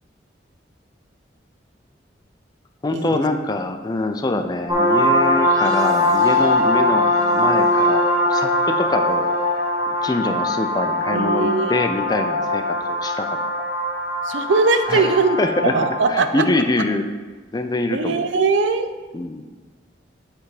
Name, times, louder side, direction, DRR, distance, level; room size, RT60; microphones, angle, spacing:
voice 1, 2.8-9.3 9.9-13.3 14.9-15.7 16.1-17.1 17.5-18.2 19.1-19.4, left 2 dB, 20° left, 6 dB, 0.4 m, -24 dB
sound 1, 4.7-16.0, left 1 dB, 20° right, 1.0 m, -21 dB
voice 2, 11.0-11.7 14.2-16.4 17.9-18.9, right 4 dB, 85° right, 9 dB, 0.5 m, -20 dB
8.1 x 3.5 x 4.8 m, 1.4 s
head